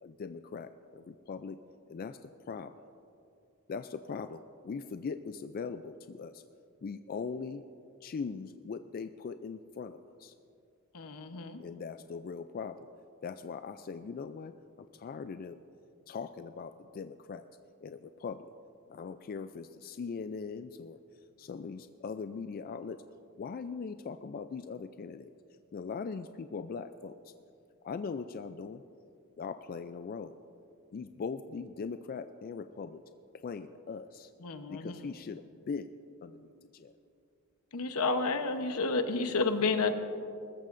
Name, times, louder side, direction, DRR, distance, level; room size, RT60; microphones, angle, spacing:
voice 1, 0.0-1.6 1.9-2.7 3.7-6.4 6.8-7.6 8.0-10.3 11.6-12.9 13.2-15.6 16.1-17.5 17.8-18.5 18.9-21.0 21.4-23.0 23.4-25.3 25.7-27.3 27.8-28.8 29.4-30.4 30.9-33.0 33.3-34.3 34.7-35.9 36.2-36.9, left 5 dB, 40° left, 10 dB, 0.3 m, -40 dB
voice 2, 10.9-11.6 34.4-35.0 37.7-39.9, left 3 dB, 80° left, 8 dB, 0.9 m, -30 dB
21.0 x 13.5 x 2.6 m, 2.5 s
head